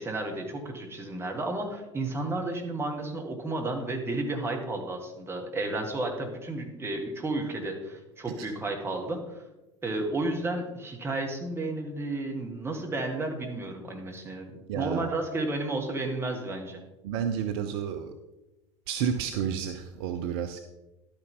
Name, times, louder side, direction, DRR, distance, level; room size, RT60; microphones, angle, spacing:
voice 1, 0.0-9.4 9.8-16.8, right 2 dB, 15° right, 2 dB, 2.0 m, -32 dB
voice 2, 14.7-15.2 17.0-18.1 18.9-20.6, right 8 dB, 50° right, 8 dB, 0.7 m, -31 dB
11.5 x 8.9 x 3.9 m, 1.0 s
figure-of-eight pair, 75°, 17 cm